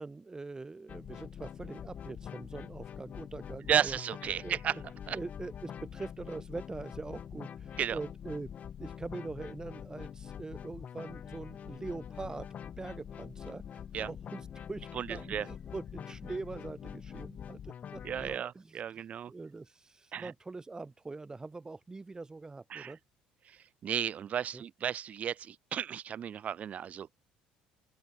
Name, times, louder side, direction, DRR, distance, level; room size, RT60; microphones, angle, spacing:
voice 1, 0.0-4.0 4.4-4.6 5.1-8.5 8.8-12.5 12.8-23.0 24.5-24.6, right 3 dB, 20° right, 4.2 m, -43 dB
sound 1, 0.9-18.4, left 8 dB, 45° left, 2.1 m, -45 dB
voice 2, 3.7-4.8 5.1-5.2 7.8-8.0 13.9-14.1 14.9-15.5 18.0-19.3 20.1-20.3 22.7-22.9 23.5-23.6 23.8-27.1, right 9 dB, 45° right, 0.3 m, -33 dB
sound 2, 11.4-17.6, left 4 dB, 30° left, 5.6 m, -59 dB
open air
hypercardioid pair, 75°, 3 cm